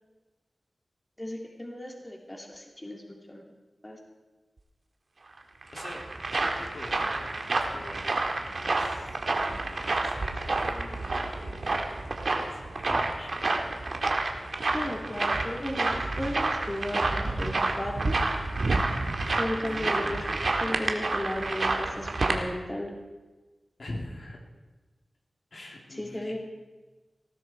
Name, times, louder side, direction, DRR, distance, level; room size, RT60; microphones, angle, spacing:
voice 1, 1.2-3.4 3.8-4.0 14.7-18.2 19.3-20.2 20.6-22.9 25.9-26.4, left 1 dB, 20° left, 0 dB, 2.5 m, -35 dB
sound 1, 5.4-22.4, right 2 dB, 70° right, 1.7 m, -29 dB
voice 2, 5.7-6.1 6.4-7.3 7.6-13.3 19.4-20.4 23.8-24.4 25.5-26.4, left 1 dB, 70° left, 0 dB, 3.0 m, -44 dB
19.5 x 14.5 x 4.5 m, 1.2 s
wide cardioid pair, 70°, 0 cm